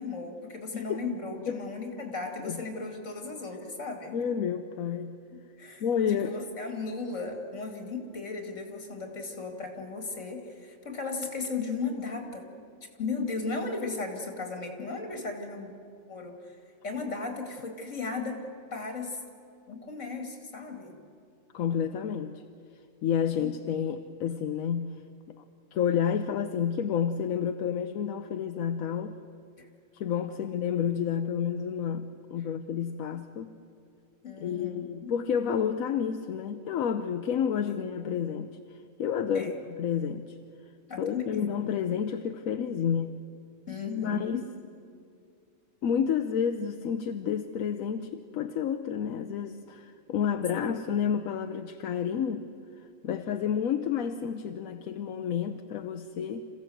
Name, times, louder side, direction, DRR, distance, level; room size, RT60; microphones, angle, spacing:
voice 1, 0.0-4.3 5.3-5.8 6.1-12.5 13.0-15.7 16.1-16.5 16.8-19.2 19.7-21.0 23.3-23.5 29.6-29.7 34.2-35.1 37.6-38.3 39.3-39.5 40.9-41.5 41.9-42.0 43.7-44.5 50.5-50.7, left 4 dB, 65° left, 4 dB, 2.8 m, -36 dB
voice 2, 4.1-5.2 5.8-6.4 21.5-22.4 23.0-24.9 25.7-29.1 29.9-33.5 34.4-38.5 39.0-39.5 39.8-40.3 41.0-43.2 44.0-44.4 45.8-52.5 53.0-56.5, left 8 dB, 85° left, 7 dB, 1.2 m, -30 dB
27.0 x 15.5 x 7.9 m, 2.4 s
omnidirectional pair, 1.4 m